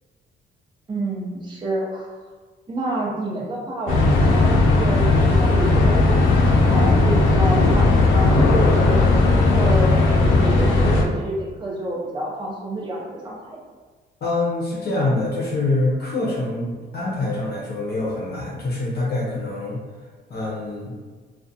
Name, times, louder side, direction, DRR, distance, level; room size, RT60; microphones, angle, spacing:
voice 1, 0.9-2.1 2.7-9.0 9.5-13.6, right 1 dB, 25° right, -4 dB, 0.6 m, -28 dB
sound 1, 3.9-11.0, left 2 dB, 85° left, 0.4 m, -16 dB
voice 2, 14.2-19.8 20.3-20.9, left 2 dB, 55° left, -4 dB, 0.7 m, -25 dB
2.4 x 2.1 x 2.6 m, 1.5 s
cardioid pair, 90°, 20 cm